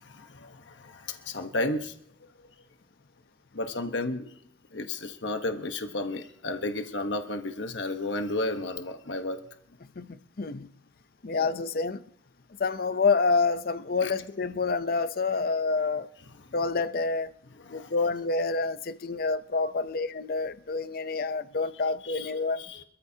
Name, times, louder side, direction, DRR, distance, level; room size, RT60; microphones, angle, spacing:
voice 1, 0.1-1.9 2.4-2.5 3.5-4.3 4.7-9.4 11.3-11.5 14.0-14.1 16.4-16.5 17.6-17.9 22.0-22.3 22.6-22.8, left 2 dB, 65° left, 1.1 m, -33 dB
voice 2, 10.0-10.7 11.2-12.0 12.6-16.1 16.5-17.3 17.7-22.7, left 4 dB, 50° left, 0.6 m, -28 dB
26.5 x 14.0 x 2.8 m
head